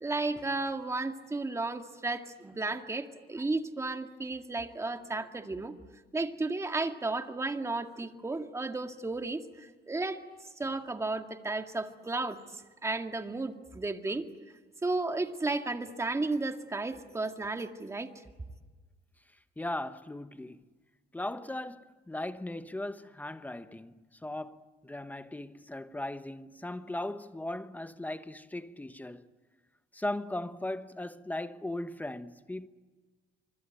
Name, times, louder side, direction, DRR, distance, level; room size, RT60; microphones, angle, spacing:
voice 1, 0.0-5.8 6.1-9.4 9.9-10.2 10.6-12.4 12.8-14.3 14.8-18.1, right 3 dB, 15° right, 2.1 m, -33 dB
voice 2, 19.6-20.6 21.1-23.9 24.2-29.3 29.9-32.7, left 1 dB, 10° left, 1.0 m, -38 dB
25.0 x 25.0 x 9.1 m
cardioid pair, 110°, 17 cm